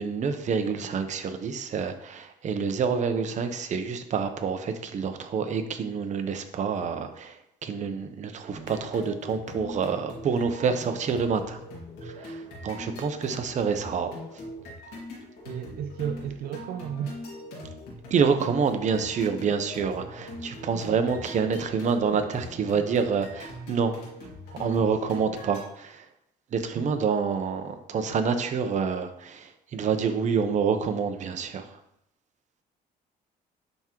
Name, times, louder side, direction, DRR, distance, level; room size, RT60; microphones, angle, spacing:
voice 1, 0.0-11.6 12.0-14.1 18.1-23.9 24.6-26.0 26.5-31.7, right 6 dB, 45° right, 8 dB, 0.8 m, -27 dB
sound 1, 8.5-25.6, left 1 dB, 90° left, 2.1 m, -42 dB
voice 2, 15.4-17.2 20.7-20.9 26.7-27.0, right 8 dB, 65° right, 6 dB, 0.4 m, -33 dB
10.5 x 3.6 x 3.0 m, 0.78 s
cardioid pair, 110°, 17 cm